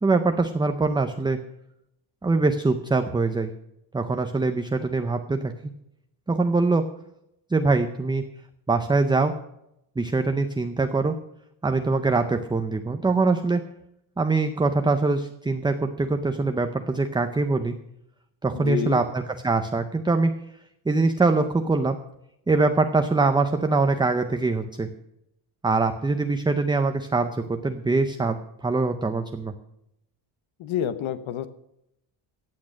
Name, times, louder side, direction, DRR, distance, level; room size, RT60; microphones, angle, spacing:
voice 1, 0.0-1.4 2.2-3.5 3.9-5.5 6.3-6.8 7.5-8.3 8.7-9.3 10.0-11.1 11.6-13.6 14.2-17.7 18.4-20.3 20.9-22.0 22.5-24.9 25.6-29.5, right 3 dB, 10° right, 7 dB, 0.5 m, -23 dB
voice 2, 18.5-19.0 30.6-31.5, left 10 dB, 70° left, 12 dB, 1.0 m, -28 dB
15.0 x 8.6 x 6.2 m, 0.80 s
cardioid pair, 175°, 50 cm